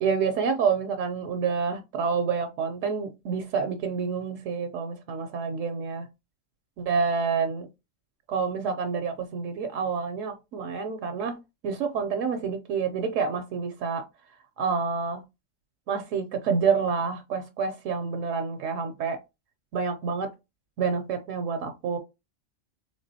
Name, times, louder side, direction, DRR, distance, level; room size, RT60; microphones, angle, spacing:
voice 1, 0.0-6.1 6.8-7.7 8.3-11.4 11.6-14.0 14.6-15.2 15.9-19.2 19.7-20.3 20.8-22.0, right 5 dB, 75° right, 0.9 m, -28 dB
3.6 x 3.5 x 2.7 m
omnidirectional pair, 1.4 m